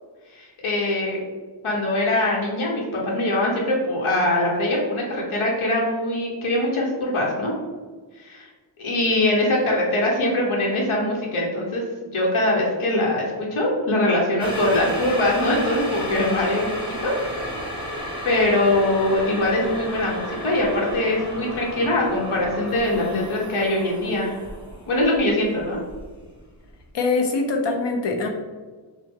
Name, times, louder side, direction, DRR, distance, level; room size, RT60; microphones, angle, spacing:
voice 1, 0.3-1.2 1.6-7.5 8.2-8.5 8.8-11.8 12.1-17.3 17.8-24.4 24.9-25.8, left 1 dB, 80° left, -3 dB, 1.0 m, -22 dB
sound 1, 14.4-26.5 26.8-26.9, equal, 10° right, 1.0 m, -33 dB
voice 2, 26.9-28.3, left 3 dB, 60° left, 2 dB, 0.7 m, -23 dB
5.8 x 2.2 x 3.6 m, 1.4 s
wide cardioid pair, 165°, 48 cm